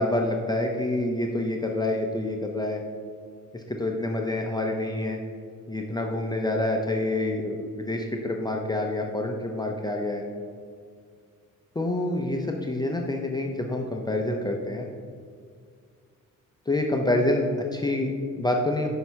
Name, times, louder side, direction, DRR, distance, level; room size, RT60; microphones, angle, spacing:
voice 1, 0.0-2.8 3.5-5.2 5.7-10.2 11.8-14.9 16.7-18.9, left 1 dB, 15° left, 0 dB, 0.6 m, -27 dB
5.6 x 5.3 x 6.2 m, 2.1 s
wide cardioid pair, 125°, 31 cm